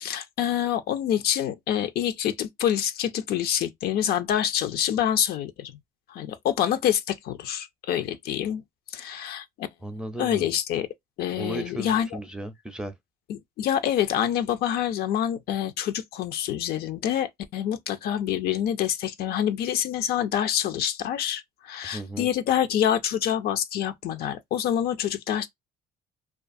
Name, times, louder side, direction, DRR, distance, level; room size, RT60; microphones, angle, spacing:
voice 1, 0.0-5.7 6.1-8.6 8.9-9.7 10.2-10.9 11.2-12.2 13.3-25.5, left 10 dB, 70° left, 0.4 m, -26 dB
voice 2, 9.8-10.5 11.4-12.9 21.8-22.3, right 1 dB, 5° right, 0.4 m, -35 dB
2.3 x 2.3 x 2.5 m
cardioid pair, 110°, 17 cm